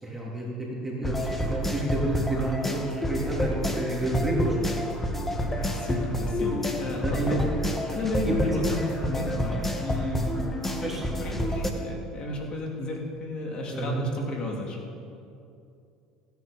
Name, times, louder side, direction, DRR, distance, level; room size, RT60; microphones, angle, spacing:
voice 1, 0.0-4.7 6.9-7.4 8.2-8.6 10.8-11.0 13.7-14.1, right 1 dB, 10° right, -4 dB, 3.4 m, -29 dB
sound 1, 1.0-11.7, equal, 10° left, 1.7 m, -29 dB
voice 2, 5.5-7.4 7.9-10.3 10.8-14.8, left 2 dB, 45° left, -1 dB, 3.2 m, -33 dB
16.5 x 9.7 x 5.3 m, 2.6 s
hypercardioid pair, 85°, 2 cm